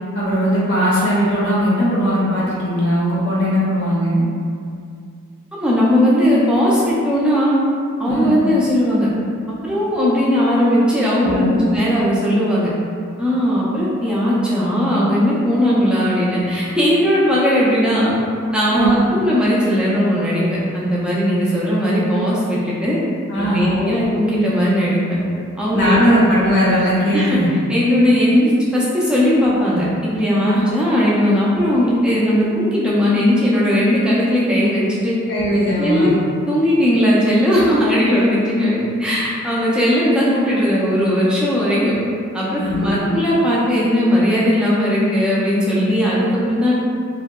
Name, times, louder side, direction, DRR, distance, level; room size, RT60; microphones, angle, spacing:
voice 1, 0.1-4.2 8.0-8.4 11.2-11.7 18.7-18.9 23.3-24.0 25.7-27.5 30.5-30.6 35.3-36.1 42.6-43.0, equal, 55° left, -8 dB, 0.6 m, -18 dB
voice 2, 5.5-7.5 8.0-9.1 9.6-12.7 13.2-18.1 18.5-20.4 20.7-23.0 23.4-25.2 25.6-26.1 27.1-27.4 27.7-35.2 35.8-36.2 36.5-42.0 42.3-46.7, equal, 5° right, -8 dB, 0.4 m, -17 dB
2.6 x 2.1 x 2.2 m, 2.4 s
head